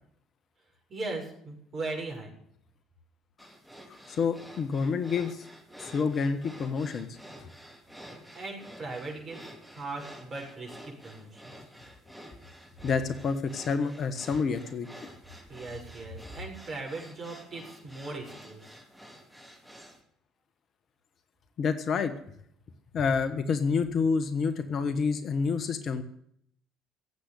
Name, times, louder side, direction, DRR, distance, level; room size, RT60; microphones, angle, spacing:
voice 1, 0.9-2.3 8.0-11.6 15.5-18.8, right 3 dB, 40° right, 0 dB, 7.0 m, -39 dB
sound 1, 3.4-20.0, equal, ahead, 4.7 m, -50 dB
voice 2, 4.1-5.5 5.8-7.1 7.4-7.5 12.8-15.1 21.6-22.1 22.9-26.0, left 5 dB, 45° left, 10 dB, 1.3 m, -28 dB
16.5 x 8.1 x 9.9 m, 0.69 s
figure-of-eight pair, 55°, 0 cm